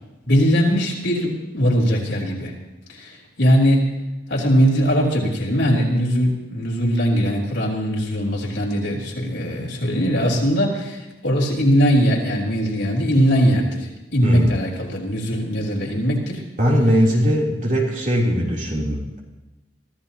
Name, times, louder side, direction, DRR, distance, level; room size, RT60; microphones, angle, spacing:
voice 1, 0.2-2.5 2.9-3.9 4.3-16.4, equal, 75° left, -2 dB, 3.7 m, -20 dB
voice 2, 14.2-14.6 16.6-19.2, equal, 45° right, -3 dB, 3.5 m, -20 dB
24.0 x 14.5 x 3.0 m, 1.0 s
head